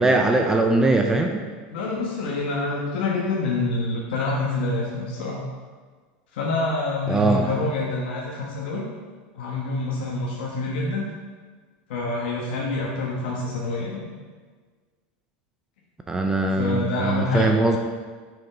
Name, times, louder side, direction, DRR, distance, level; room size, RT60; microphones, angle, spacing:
voice 1, 0.0-1.4 7.1-7.5 16.1-17.8, right 2 dB, 10° right, 3 dB, 0.4 m, -21 dB
voice 2, 1.7-5.4 6.3-8.9 9.3-11.1 11.9-14.1 16.5-17.5, left 2 dB, 80° left, -3 dB, 1.2 m, -27 dB
6.1 x 4.8 x 5.0 m, 1.5 s
supercardioid pair, 145°, 5 cm